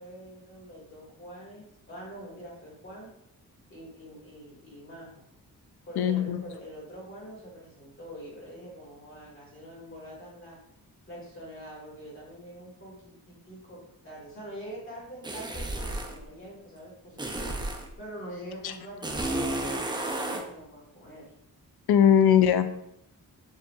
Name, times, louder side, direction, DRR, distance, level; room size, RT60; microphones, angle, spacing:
voice 1, 0.0-3.1 3.7-5.2 5.9-10.6 11.1-17.5 18.0-21.3, equal, 35° left, -4 dB, 1.6 m, -45 dB
voice 2, 6.0-6.4 18.6-18.7 21.9-22.8, left 9 dB, 85° left, 10 dB, 0.5 m, -20 dB
sound 1, 15.2-16.2 17.2-17.9 19.0-20.5, right 1 dB, 15° right, 0.4 m, -32 dB
6.6 x 2.8 x 2.3 m, 0.78 s
wide cardioid pair, 125°, 37 cm